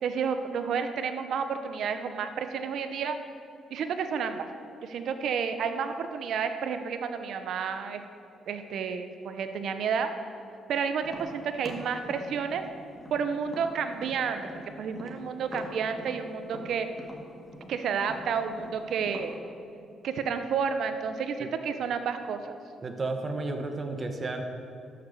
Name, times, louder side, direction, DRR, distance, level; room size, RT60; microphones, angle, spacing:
voice 1, 0.0-3.2 3.7-4.5 4.8-8.0 8.5-10.1 10.7-12.6 13.1-14.4 14.8-16.9 17.7-19.3 20.0-22.6, right 6 dB, 70° right, 8 dB, 0.8 m, -30 dB
Tap, 11.0-14.6 14.9-19.3, left 1 dB, ahead, 2.1 m, -44 dB
voice 2, 22.8-24.4, right 3 dB, 35° right, 6 dB, 1.1 m, -32 dB
12.5 x 6.8 x 7.1 m, 2.6 s
cardioid pair, 90°, 0 cm